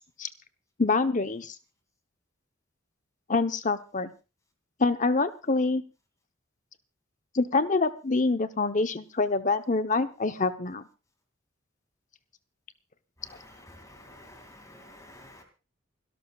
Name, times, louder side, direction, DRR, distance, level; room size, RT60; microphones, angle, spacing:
voice 1, 0.8-1.5 3.3-4.1 4.8-5.8 7.3-10.8, left 3 dB, 40° left, 10 dB, 0.9 m, -26 dB
voice 2, 13.2-15.4, left 1 dB, 15° left, 5 dB, 2.5 m, -50 dB
28.5 x 12.5 x 2.4 m, 0.31 s
head